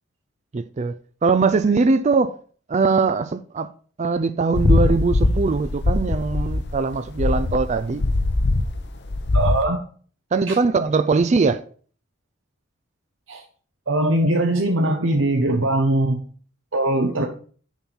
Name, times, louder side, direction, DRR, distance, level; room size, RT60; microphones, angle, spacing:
voice 1, 0.5-2.4 2.7-3.7 4.0-8.0 10.3-11.6, right 4 dB, 35° right, 0.4 m, -21 dB
sound 1, 4.5-9.6, left 2 dB, 60° left, 0.8 m, -21 dB
voice 2, 9.3-9.8 10.5-10.6 13.3-13.4 13.9-16.2 16.7-17.3, right 1 dB, 75° right, 1.0 m, -21 dB
7.3 x 5.3 x 5.6 m
head